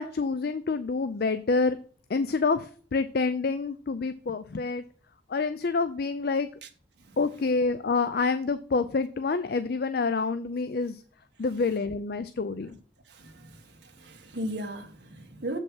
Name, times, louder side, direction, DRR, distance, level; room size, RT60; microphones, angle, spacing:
voice 1, 0.0-1.8 2.1-4.8 5.3-6.5 7.2-11.0 11.4-12.7, left 4 dB, 55° left, 0.4 m, -27 dB
voice 2, 13.1-15.6, right 1 dB, 60° right, 1.5 m, -37 dB
7.3 x 5.3 x 5.6 m
head